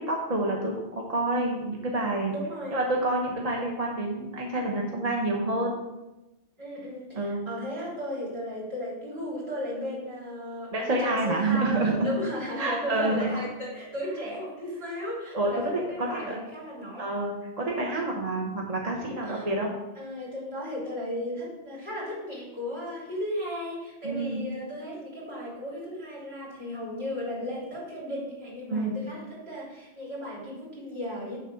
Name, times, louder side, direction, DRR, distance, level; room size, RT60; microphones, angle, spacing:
voice 1, 0.1-2.3 2.7-5.8 7.1-7.5 10.7-12.1 12.6-13.2 15.3-16.4 17.0-19.7 24.0-24.4 28.7-29.0, right 2 dB, 35° right, 0 dB, 1.0 m, -28 dB
voice 2, 2.3-2.8 6.6-17.1 19.2-19.5 20.0-31.4, left 1 dB, 70° right, -6 dB, 3.7 m, -35 dB
9.8 x 3.7 x 5.6 m, 1.0 s
omnidirectional pair, 1.1 m